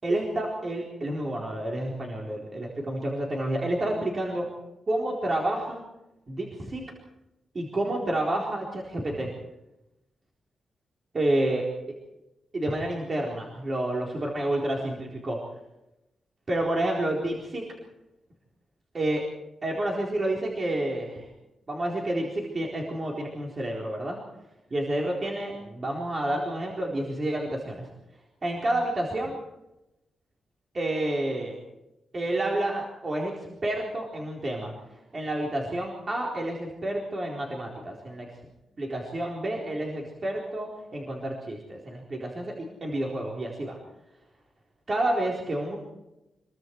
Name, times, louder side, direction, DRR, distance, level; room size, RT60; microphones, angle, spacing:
voice 1, 0.0-4.5 4.9-5.8 6.3-6.8 7.5-9.3 11.1-11.6 12.5-15.4 16.5-17.7 18.9-19.2 19.6-21.3 21.7-24.2 24.7-27.9 28.4-29.4 30.7-31.6 32.1-38.4 38.8-43.8 44.9-45.8, right 1 dB, 30° right, -2 dB, 4.2 m, -29 dB
27.0 x 23.5 x 4.7 m, 0.93 s
wide cardioid pair, 175°, 0 cm